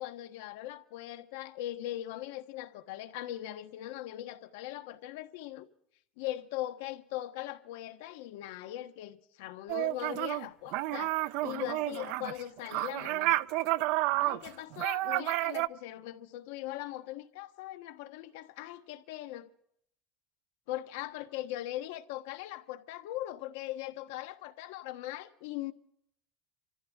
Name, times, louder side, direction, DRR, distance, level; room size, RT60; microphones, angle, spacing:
voice 1, 0.0-5.7 6.2-11.2 11.4-13.3 14.2-19.5 20.7-25.7, left 14 dB, 80° left, 1.3 m, -40 dB
sound 1, 9.7-10.5 10.7-15.7, right 18 dB, 60° right, 0.5 m, -30 dB
27.0 x 14.5 x 3.6 m
cardioid pair, 160°, 0 cm